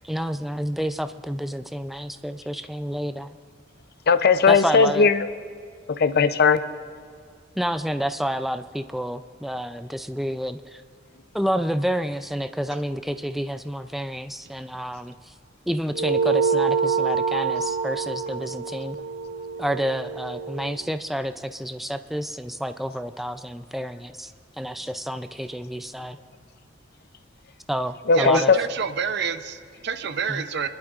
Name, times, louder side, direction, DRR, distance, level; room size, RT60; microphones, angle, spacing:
voice 1, 0.0-3.3 4.5-5.1 7.6-10.8 11.3-15.2 15.7-19.0 19.6-24.3 24.6-26.2 27.7-28.5 30.3-30.4, equal, ahead, 0.3 m, -29 dB
voice 2, 4.1-5.3 6.0-6.6 28.1-28.6, left 5 dB, 55° left, 0.5 m, -17 dB
sound 1, 15.9-20.7, right 5 dB, 85° right, 2.2 m, -26 dB
voice 3, 28.1-30.7, right 6 dB, 60° right, 0.6 m, -28 dB
28.5 x 11.5 x 2.4 m
head